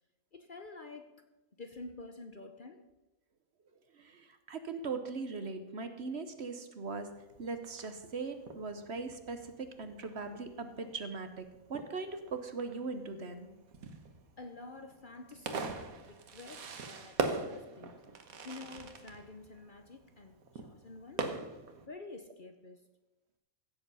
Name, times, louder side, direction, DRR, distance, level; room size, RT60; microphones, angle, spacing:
voice 1, 0.3-1.1 1.6-2.9 14.4-15.8 16.1-18.1 18.4-20.3 20.6-21.3 21.8-22.9, left 3 dB, 40° left, 0.9 m, -49 dB
voice 2, 4.0-11.4 11.7-13.5, right 4 dB, 50° right, 1.1 m, -40 dB
Fireworks, 6.8-21.9, right 4 dB, 75° right, 1.6 m, -43 dB
15.5 x 7.8 x 5.5 m
omnidirectional pair, 1.5 m